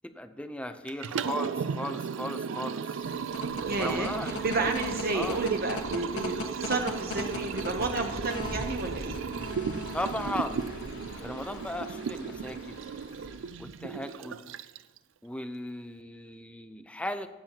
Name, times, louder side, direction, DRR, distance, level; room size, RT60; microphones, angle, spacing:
voice 1, 0.0-3.1 3.8-4.3 4.6-4.7 5.1-5.4 9.9-10.7 11.2-12.8 13.6-14.4 15.2-17.3, left 1 dB, 5° left, 9 dB, 0.5 m, -36 dB
Liquid, 0.9-15.0, right 6 dB, 65° right, 0.4 m, -35 dB
sound 1, 3.0-13.7, left 2 dB, 60° left, 1.2 m, -40 dB
voice 2, 3.6-9.2, right 3 dB, 50° right, 3 dB, 0.8 m, -31 dB
22.0 x 7.4 x 2.9 m, 1.4 s
head